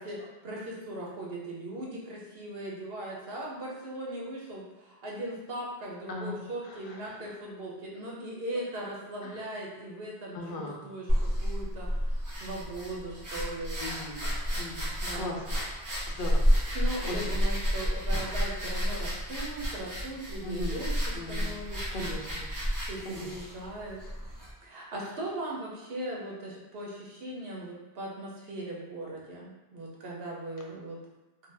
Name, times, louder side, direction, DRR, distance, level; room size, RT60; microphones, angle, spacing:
voice 1, 0.0-13.9 15.0-15.3 16.7-22.1 22.5-24.0 24.6-31.0, right 1 dB, 70° right, -3 dB, 0.9 m, -39 dB
voice 2, 6.1-7.3 9.2-9.4 10.3-10.8 13.8-15.6 16.2-17.4 20.4-21.6 21.9-22.5 23.0-23.3, left 1 dB, 65° left, 0 dB, 0.7 m, -39 dB
sound 1, 11.1-24.5, equal, 25° right, 0.5 m, -31 dB
2.6 x 2.1 x 3.2 m, 1.1 s
omnidirectional pair, 1.0 m